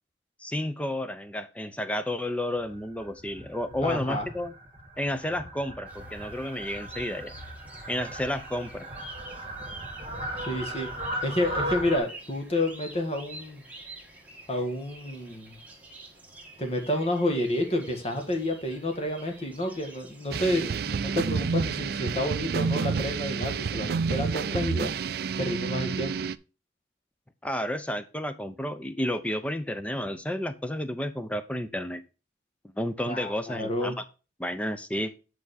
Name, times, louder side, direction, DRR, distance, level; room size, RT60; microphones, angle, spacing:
voice 1, 0.4-4.5 5.0-7.3 7.9-8.9 27.4-32.0 32.8-34.0 34.4-35.1, left 1 dB, 5° left, 10 dB, 0.6 m, -31 dB
Fowl, 2.6-12.0, right 1 dB, 25° right, 1.8 m, -38 dB
voice 2, 3.8-4.3 10.4-10.9 11.2-13.6 14.5-15.6 16.6-24.9 25.4-26.1 33.1-34.0, left 1 dB, 35° left, 4 dB, 1.4 m, -29 dB
sound 1, 5.9-20.9, right 2 dB, 10° right, 1.7 m, -48 dB
sound 2, 20.3-26.4, right 5 dB, 55° right, 0.4 m, -29 dB
8.9 x 4.8 x 4.1 m, 0.32 s
head